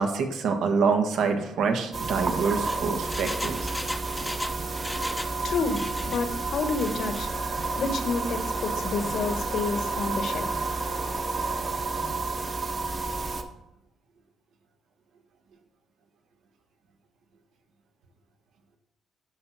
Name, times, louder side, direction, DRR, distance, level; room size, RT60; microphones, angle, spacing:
voice 1, 0.0-3.7, right 5 dB, 75° right, 1.5 m, -26 dB
sound 1, 1.9-13.4, right 3 dB, 40° right, 1.2 m, -30 dB
Engine, 2.4-5.4 5.6-6.2 6.7-7.2 7.6-7.7, left 1 dB, 10° left, 0.7 m, -36 dB
voice 2, 4.6-11.7, left 4 dB, 65° left, 1.3 m, -31 dB
12.0 x 6.1 x 4.1 m
cardioid pair, 90°, 0 cm